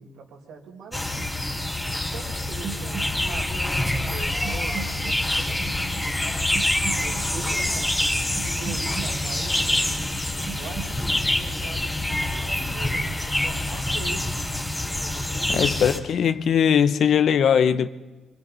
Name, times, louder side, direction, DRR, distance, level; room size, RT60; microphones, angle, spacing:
voice 1, 0.0-1.6 2.0-3.6 4.1-6.4 6.9-9.6 10.5-14.3 15.0-16.0, right 5 dB, 80° right, 4.6 m, -42 dB
sound 1, 0.9-16.0, left 1 dB, 15° left, 4.1 m, -26 dB
sound 2, 2.4-14.3 14.6-15.0, right 7 dB, 45° right, 1.8 m, -41 dB
sound 3, 3.1-13.8, left 4 dB, 35° left, 1.3 m, -40 dB
voice 2, 15.5-17.9, left 8 dB, 65° left, 1.0 m, -20 dB
25.5 x 25.5 x 4.1 m
cardioid pair, 90°, 0 cm